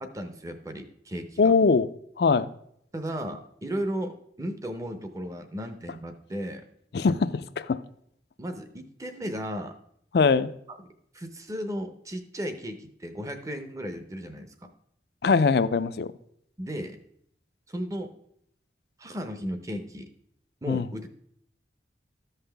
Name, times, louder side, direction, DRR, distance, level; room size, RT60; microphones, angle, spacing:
voice 1, 0.0-1.5 2.9-6.7 8.4-9.8 10.7-10.9 11.1-14.5 16.6-17.0 17.7-18.1 19.0-20.1 20.6-21.1, equal, 20° right, 0.7 m, -35 dB
voice 2, 1.4-1.9 2.2-2.5 6.9-7.8 10.1-10.5 15.2-16.1 20.7-20.9, left 4 dB, 60° left, 0.4 m, -22 dB
13.5 x 5.6 x 3.4 m
head